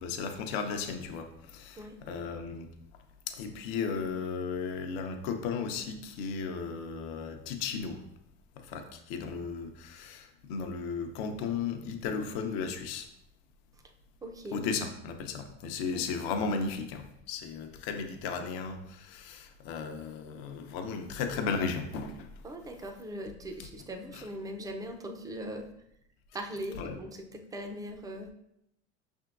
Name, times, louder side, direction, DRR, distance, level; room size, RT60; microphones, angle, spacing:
voice 1, 0.0-2.7 3.3-8.0 8.6-13.1 14.5-22.3 24.1-24.2 26.8-27.0, left 5 dB, 65° left, 5 dB, 0.7 m, -35 dB
voice 2, 1.8-2.2 14.2-14.6 15.9-16.2 22.4-25.7 26.3-28.3, right 1 dB, 10° right, 4 dB, 0.5 m, -40 dB
5.6 x 3.6 x 2.4 m, 0.79 s
hypercardioid pair, 90°, 33 cm